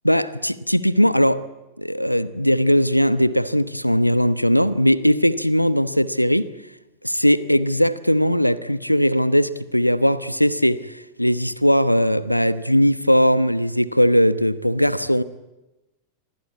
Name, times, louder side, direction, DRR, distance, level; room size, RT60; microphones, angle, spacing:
voice 1, 0.0-1.4 1.8-6.5 7.0-15.2, equal, 90° left, 1.0 m, -19 dB
28.5 x 23.5 x 8.5 m
figure-of-eight pair, 90°, 0 cm